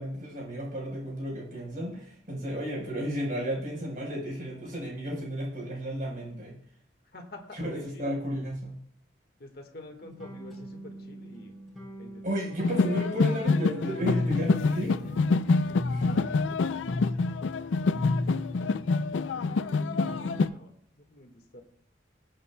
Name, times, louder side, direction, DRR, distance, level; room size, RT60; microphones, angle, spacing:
voice 1, 0.0-6.6 7.5-8.7 12.2-14.9 15.9-16.3 19.2-19.7, equal, 45° right, -2 dB, 4.5 m, -33 dB
voice 2, 7.1-8.2 9.4-11.5 12.0-12.3 12.6-13.3 14.5-15.2 16.1-17.3 17.6-17.9 19.3-21.6, left 1 dB, 55° left, 3 dB, 1.7 m, -49 dB
sound 1, 10.0-20.5, left 2 dB, ahead, 4.1 m, -37 dB
sound 2, 12.6-20.5, left 4 dB, 85° left, 0.4 m, -26 dB
20.5 x 8.7 x 2.3 m, 0.64 s
head